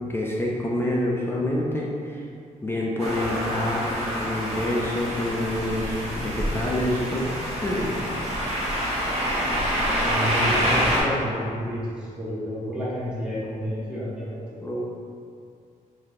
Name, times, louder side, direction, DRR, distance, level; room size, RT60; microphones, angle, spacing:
voice 1, 0.1-2.2 2.6-7.3 7.6-8.1 14.6-14.8, left 1 dB, 15° left, -4 dB, 0.4 m, -27 dB
sound 1, 3.0-11.0, equal, 45° right, 0.8 m, -26 dB
voice 2, 10.0-14.7, equal, 5° right, -9 dB, 0.8 m, -30 dB
3.5 x 2.8 x 3.6 m, 2.3 s
wide cardioid pair, 170°, 14 cm